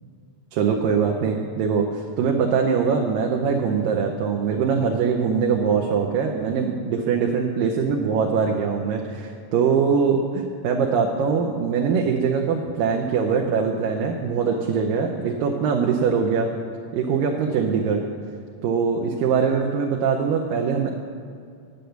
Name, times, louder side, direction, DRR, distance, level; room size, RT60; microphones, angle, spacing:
voice 1, 0.5-16.5 16.9-18.0 18.6-20.9, right 6 dB, 90° right, 1 dB, 2.5 m, -22 dB
10.5 x 8.2 x 7.8 m, 2.4 s
omnidirectional pair, 3.8 m